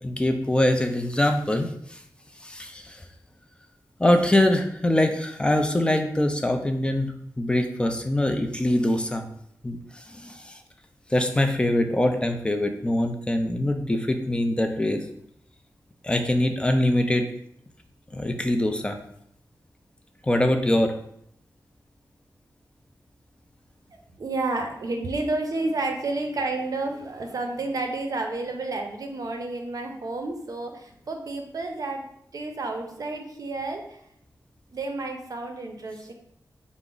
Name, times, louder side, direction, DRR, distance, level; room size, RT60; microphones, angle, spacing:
voice 1, 0.0-1.7 2.4-3.0 4.0-9.3 9.6-9.8 10.1-10.5 11.1-15.0 16.0-17.3 18.1-19.0 20.2-20.9 25.6-25.7, left 1 dB, 15° left, 5 dB, 0.4 m, -23 dB
voice 2, 23.9-32.0 32.3-34.0 34.7-36.1, right 2 dB, 60° right, 3 dB, 0.6 m, -31 dB
4.4 x 2.0 x 3.7 m, 0.72 s
wide cardioid pair, 120°, 7 cm